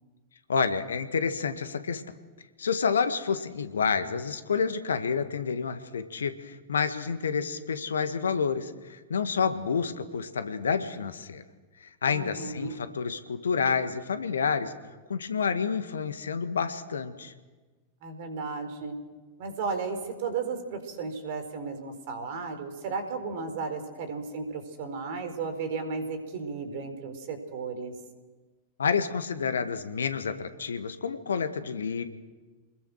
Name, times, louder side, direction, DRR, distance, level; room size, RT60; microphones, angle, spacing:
voice 1, 0.5-2.0 2.6-11.4 11.8-14.7 15.1-17.3 28.8-32.0, left 6 dB, 70° left, 10 dB, 1.7 m, -29 dB
voice 2, 12.1-12.8 18.0-18.9 19.4-27.9, right 4 dB, 50° right, 8 dB, 4.7 m, -34 dB
28.0 x 21.0 x 6.6 m, 1.3 s
figure-of-eight pair, 90°, 0 cm